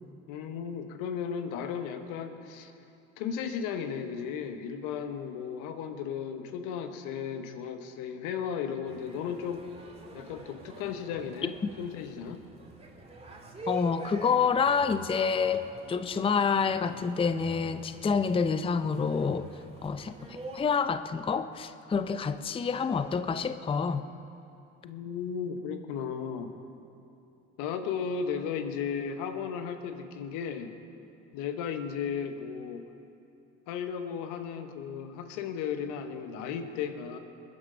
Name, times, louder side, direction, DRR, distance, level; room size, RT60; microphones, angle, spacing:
voice 1, 0.3-2.7 3.2-9.6 10.1-12.4 24.8-26.6 27.6-30.8 31.3-32.8 33.7-37.2, left 7 dB, 75° left, 8 dB, 1.2 m, -35 dB
sound 1, 8.9-20.6, right 2 dB, 20° right, 2.4 m, -46 dB
voice 2, 13.7-19.5 19.8-24.0, left 5 dB, 15° left, 11 dB, 0.6 m, -28 dB
21.0 x 9.7 x 5.1 m, 2.8 s
hypercardioid pair, 70°, 32 cm